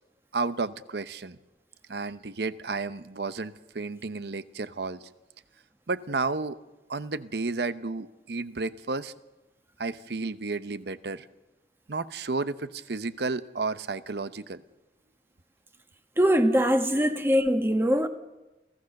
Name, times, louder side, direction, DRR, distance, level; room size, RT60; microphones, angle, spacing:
voice 1, 0.3-1.4 1.9-5.1 5.9-6.6 6.9-9.1 9.8-11.3 11.9-14.6 16.9-17.0, right 3 dB, 75° right, 0.8 m, -32 dB
voice 2, 16.2-18.1, equal, 15° right, 1.3 m, -22 dB
28.0 x 16.0 x 6.6 m
head